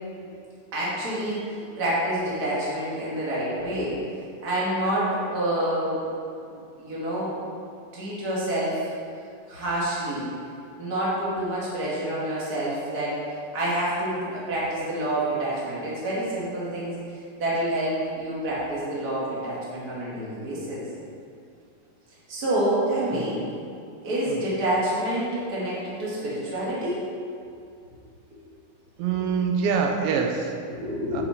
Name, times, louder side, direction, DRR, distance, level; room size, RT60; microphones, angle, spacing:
voice 1, 0.7-1.4 1.8-3.9 4.4-6.0 6.5-7.4 7.9-8.9 9.5-10.3 10.8-13.2 13.5-17.0 17.4-20.8 22.3-23.4 24.0-27.0 30.6-31.2, right 1 dB, 30° right, -8 dB, 2.1 m, -27 dB
voice 2, 23.1-23.5 24.3-24.4 29.0-30.6 31.1-31.2, right 6 dB, 85° right, 2 dB, 2.9 m, -25 dB
9.0 x 7.9 x 4.5 m, 2.5 s
omnidirectional pair, 5.2 m